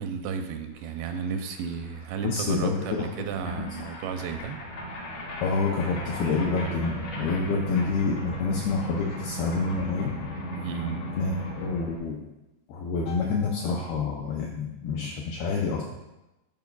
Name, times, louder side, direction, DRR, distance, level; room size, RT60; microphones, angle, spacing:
voice 1, 0.0-4.6 10.6-11.0, right 6 dB, 85° right, 6 dB, 2.6 m, -33 dB
sound 1, 0.8-0.9 1.1-12.0, right 1 dB, 65° left, 1.9 m, -37 dB
voice 2, 2.2-3.1 3.4-3.7 5.4-10.2 11.2-12.2 12.7-15.8, left 4 dB, 85° left, -1 dB, 2.2 m, -28 dB
13.0 x 5.1 x 2.3 m, 0.99 s
omnidirectional pair, 5.1 m